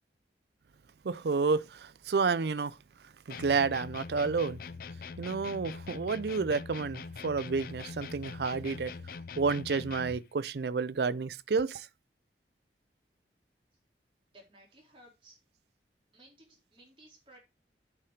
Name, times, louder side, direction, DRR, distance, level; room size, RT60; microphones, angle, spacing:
voice 1, 1.0-2.8 3.3-4.6 5.2-8.9 9.4-11.9, right 4 dB, 70° right, 0.5 m, -30 dB
sound 1, 3.3-10.3, left 5 dB, 55° left, 0.4 m, -43 dB
voice 2, 14.3-15.4 16.1-17.4, right 1 dB, 30° right, 4.0 m, -57 dB
8.3 x 5.8 x 5.0 m
head